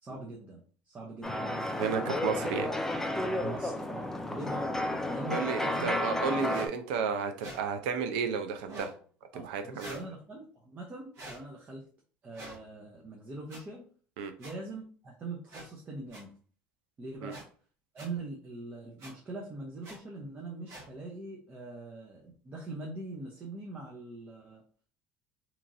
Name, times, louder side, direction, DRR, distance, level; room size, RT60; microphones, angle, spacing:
voice 1, 0.0-1.8 3.4-4.7 5.1-6.0 9.3-11.8 12.2-13.8 14.4-16.3 17.0-17.4 17.9-24.6, right 2 dB, 30° right, -2 dB, 0.7 m, -42 dB
sound 1, 1.2-6.7, left 1 dB, 10° left, 0.4 m, -32 dB
voice 2, 1.8-2.7 5.3-8.9 9.3-10.0 14.2-14.3 17.2-17.3, right 6 dB, 85° right, 7 dB, 0.5 m, -32 dB
sound 2, 6.5-6.7 7.4-7.6 8.6-8.9 9.8-10.1 11.1-11.4 12.3-12.6 13.5-13.6 14.4-14.5 15.5-15.7 16.1-16.2 17.3-17.4 18.0-18.1 19.0-19.1 19.8-20.0 20.7-20.9, right 1 dB, 60° right, 1.3 m, -45 dB
2.9 x 2.7 x 2.5 m, 0.43 s
supercardioid pair, 100°, 5 cm